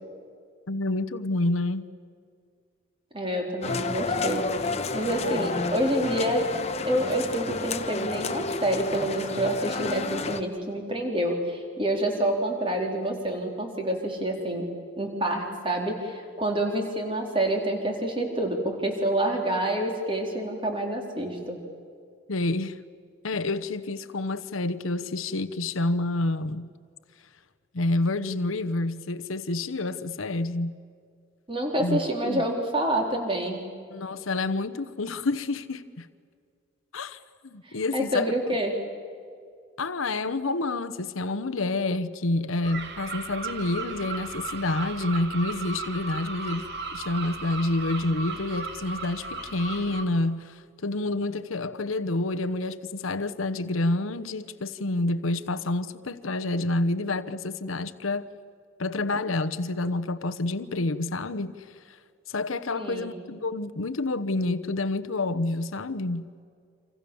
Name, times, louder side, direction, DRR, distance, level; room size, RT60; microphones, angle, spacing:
voice 1, 0.7-1.9 22.3-22.8 23.2-26.7 27.7-30.8 31.8-32.4 33.9-36.1 36.9-38.5 39.8-58.3 58.8-61.6 61.9-62.0 62.3-66.2, left 2 dB, 85° left, 1.0 m, -28 dB
voice 2, 3.1-6.4 6.8-14.7 15.0-21.6 31.5-33.6 37.6-38.7 62.8-63.1, right 1 dB, 25° right, 4.0 m, -28 dB
sound 1, 3.6-10.4, left 3 dB, 30° left, 1.2 m, -31 dB
sound 2, 42.6-50.0, right 4 dB, 55° right, 2.3 m, -36 dB
28.5 x 26.5 x 7.2 m
head